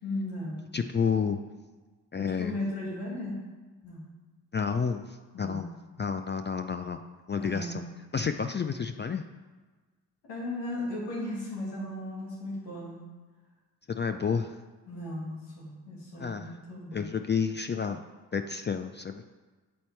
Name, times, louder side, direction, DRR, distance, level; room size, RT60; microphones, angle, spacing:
voice 1, 0.0-0.6 2.1-3.4 3.8-4.0 5.3-5.7 7.4-7.8 10.2-13.0 14.9-17.1, left 1 dB, 90° left, -5 dB, 1.9 m, -36 dB
voice 2, 0.7-1.4 2.1-2.5 4.5-5.7 6.0-7.0 7.3-7.8 8.1-9.2 13.9-14.6 16.2-16.6 16.9-18.0 18.3-19.2, left 6 dB, 25° left, 7 dB, 0.4 m, -30 dB
7.4 x 4.3 x 4.4 m, 1.3 s
supercardioid pair, 40°, 42 cm